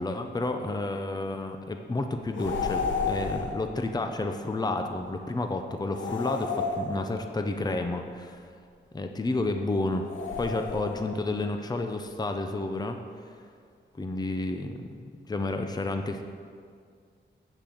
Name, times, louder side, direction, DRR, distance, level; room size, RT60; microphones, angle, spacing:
voice 1, 0.0-8.4 8.9-10.1 10.4-13.0 14.0-16.3, left 2 dB, 20° left, 5 dB, 0.7 m, -31 dB
sound 1, 2.3-3.7 5.9-7.4 10.1-11.2, left 5 dB, 90° left, 0.9 m, -31 dB
8.1 x 7.0 x 7.7 m, 2.1 s
wide cardioid pair, 125°, 19 cm